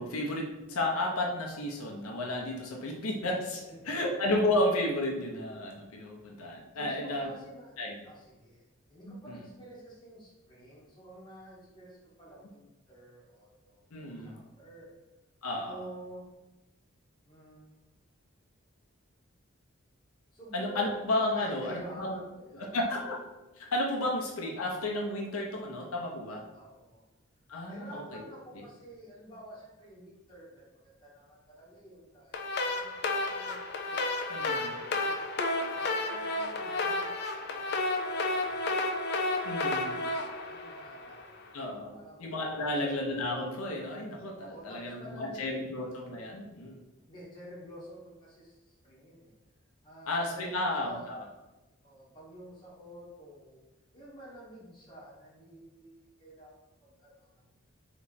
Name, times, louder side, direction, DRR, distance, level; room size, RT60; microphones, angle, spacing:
voice 1, 0.0-7.3 7.8-8.0 9.1-9.5 13.9-14.3 15.4-15.8 20.5-22.2 22.5-23.2 23.6-26.4 27.5-28.2 34.3-34.7 39.4-39.9 41.5-46.8 50.1-51.2, left 1 dB, 90° left, -1 dB, 0.8 m, -32 dB
voice 2, 3.5-4.0 6.7-7.7 8.0-8.6 8.9-13.8 14.2-14.9 15.6-16.3 17.2-17.8 20.3-21.0 21.3-22.8 26.5-27.0 27.6-32.4 32.7-34.5 34.8-35.3 35.7-38.8 39.1-39.4 40.5-41.4 41.9-42.8 44.4-45.8 47.1-49.3 49.8-51.1 51.8-53.6 53.9-57.4, right 1 dB, 20° left, -6 dB, 1.1 m, -50 dB
sound 1, 32.3-41.4, left 2 dB, 50° left, 0.4 m, -32 dB
3.4 x 3.0 x 4.2 m, 1.1 s
head